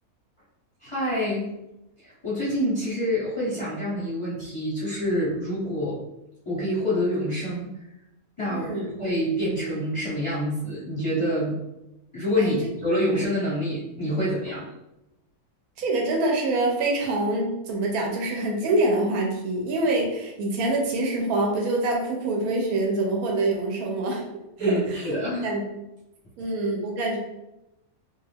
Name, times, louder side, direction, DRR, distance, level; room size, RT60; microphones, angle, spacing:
voice 1, 0.8-1.5 2.0-6.0 6.4-7.7 8.4-11.6 12.1-14.6 24.6-25.5, equal, 30° left, -9 dB, 0.6 m, -27 dB
voice 2, 8.4-8.9 12.4-12.5 15.8-24.2 24.6-25.0 25.4-25.6 26.4-27.2, right 2 dB, 80° right, 0 dB, 1.1 m, -25 dB
2.5 x 2.3 x 3.3 m, 0.92 s
omnidirectional pair, 1.6 m